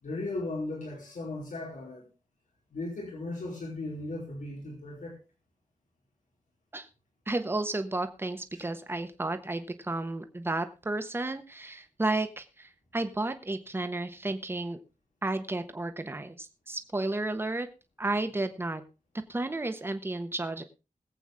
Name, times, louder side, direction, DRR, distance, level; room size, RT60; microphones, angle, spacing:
voice 1, 0.0-2.1 2.7-5.2 8.5-8.6, left 2 dB, 90° left, -2 dB, 4.7 m, -37 dB
voice 2, 7.3-14.8 15.2-17.7 18.0-18.8 19.3-20.6, right 2 dB, 20° right, 8 dB, 1.2 m, -32 dB
21.5 x 8.3 x 3.6 m, 0.30 s
wide cardioid pair, 160°, 13 cm